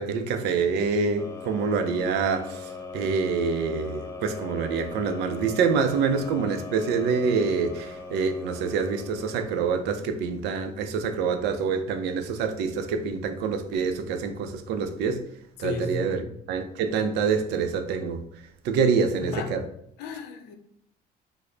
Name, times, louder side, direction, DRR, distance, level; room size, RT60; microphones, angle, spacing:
voice 1, 0.0-15.3 15.6-16.2 16.5-18.2 18.6-19.6, right 5 dB, 85° right, 0.4 m, -26 dB
sound 1, 1.2-10.1, left 4 dB, 20° left, 0.4 m, -40 dB
voice 2, 15.6-16.3 19.0-19.6 20.0-20.6, left 4 dB, 85° left, 0.5 m, -34 dB
3.6 x 2.0 x 3.2 m
cardioid pair, 110°, 17 cm